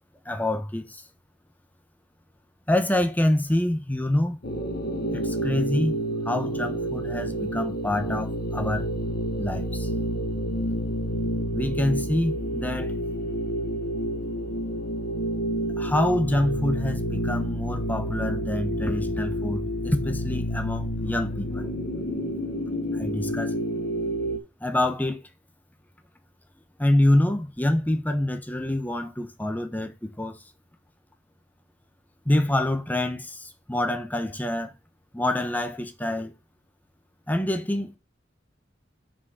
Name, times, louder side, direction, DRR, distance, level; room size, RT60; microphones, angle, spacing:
voice 1, 0.2-1.0 2.7-4.4 5.1-6.0 6.2-8.9 9.4-9.9 11.5-12.9 15.8-21.7 22.9-23.6 24.6-25.2 26.8-30.4 32.2-34.7 35.1-36.3 37.3-38.0, left 1 dB, 10° left, 1.0 m, -26 dB
sound 1, 4.4-24.4, equal, 55° left, 1.3 m, -29 dB
6.2 x 5.2 x 4.8 m
head